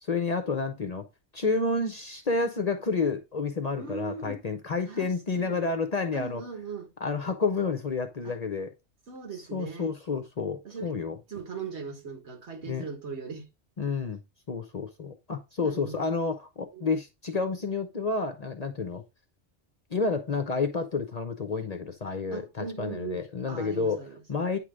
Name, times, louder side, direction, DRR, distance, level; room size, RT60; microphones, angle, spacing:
voice 1, 0.0-1.1 1.3-6.4 7.0-8.7 9.5-11.2 12.6-12.9 13.8-14.2 14.5-19.0 19.9-24.6, left 4 dB, 45° left, 0.6 m, -30 dB
voice 2, 3.8-4.4 4.8-5.6 6.1-6.9 8.2-8.3 9.1-9.9 10.6-10.9 11.3-13.5 15.6-16.1 16.7-16.9 22.3-24.2, right 5 dB, 75° right, 1.7 m, -39 dB
9.2 x 3.2 x 3.6 m
omnidirectional pair, 1.2 m